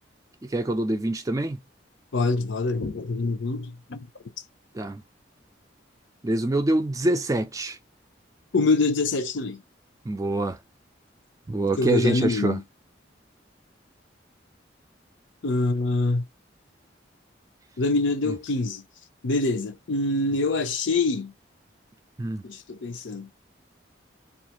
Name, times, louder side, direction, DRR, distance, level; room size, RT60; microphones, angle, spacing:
voice 1, 0.4-1.6 4.7-5.0 6.2-7.8 10.0-10.6 11.5-12.6 18.2-18.3 22.2-22.4, right 2 dB, 20° right, 0.3 m, -25 dB
voice 2, 2.1-4.0 8.5-9.6 11.8-12.6 15.4-16.2 17.8-18.8 19.2-21.3 22.4-23.3, left 3 dB, 80° left, 0.6 m, -25 dB
2.4 x 2.4 x 2.8 m
head